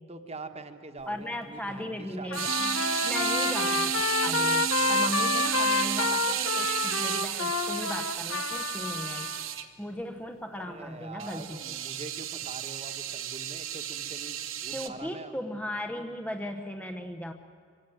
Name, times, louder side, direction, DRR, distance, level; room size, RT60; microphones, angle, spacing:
voice 1, 0.1-2.4 10.6-15.3, right 3 dB, 30° right, 7 dB, 1.3 m, -44 dB
voice 2, 1.1-9.3 9.8-11.6 14.7-17.3, left 1 dB, 5° left, 6 dB, 0.8 m, -37 dB
Trumpet, 2.3-9.4, left 4 dB, 75° left, 1.3 m, -29 dB
sound 1, 2.3-9.6 11.2-14.9, right 11 dB, 75° right, 1.2 m, -32 dB
sound 2, 2.5-7.5, right 4 dB, 50° right, 0.8 m, -37 dB
25.0 x 17.0 x 9.2 m, 2.1 s
head